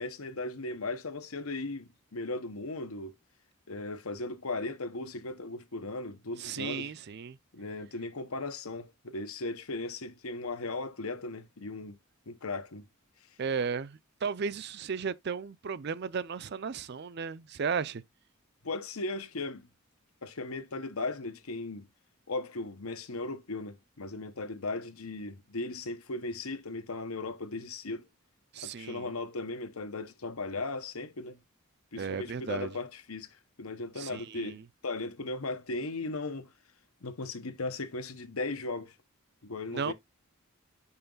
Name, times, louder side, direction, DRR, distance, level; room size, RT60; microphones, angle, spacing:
voice 1, 0.0-3.1 3.7-6.9 7.5-12.0 12.3-12.8 18.6-19.7 20.2-21.9 22.3-28.1 28.6-31.4 31.9-33.3 33.6-34.6 34.8-36.5 37.0-38.9 39.4-39.9, left 2 dB, 90° left, 1.1 m, -37 dB
voice 2, 6.4-7.4 13.4-18.0 28.5-29.1 32.0-32.8 34.0-34.6 39.7-39.9, right 6 dB, 50° right, 0.4 m, -35 dB
5.6 x 4.5 x 3.9 m
head